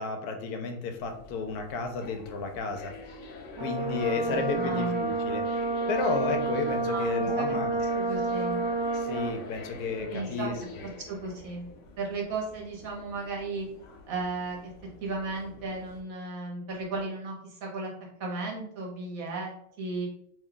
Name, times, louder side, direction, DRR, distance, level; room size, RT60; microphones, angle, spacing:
voice 1, 0.0-2.9 3.6-5.4 5.9-7.7 8.9-10.5, left 4 dB, 85° left, 5 dB, 1.1 m, -32 dB
sound 1, 1.0-16.0, left 3 dB, 65° left, 0.8 m, -46 dB
Brass instrument, 3.6-9.4, right 3 dB, 40° right, 0.3 m, -29 dB
voice 2, 3.8-5.0 6.8-7.6 7.9-8.6 10.0-10.5 11.1-11.7 12.0-13.7 14.1-14.7 15.0-17.9 18.2-19.5 19.8-20.1, right 3 dB, 65° right, -1 dB, 1.3 m, -35 dB
3.0 x 2.2 x 3.7 m, 0.68 s
omnidirectional pair, 1.6 m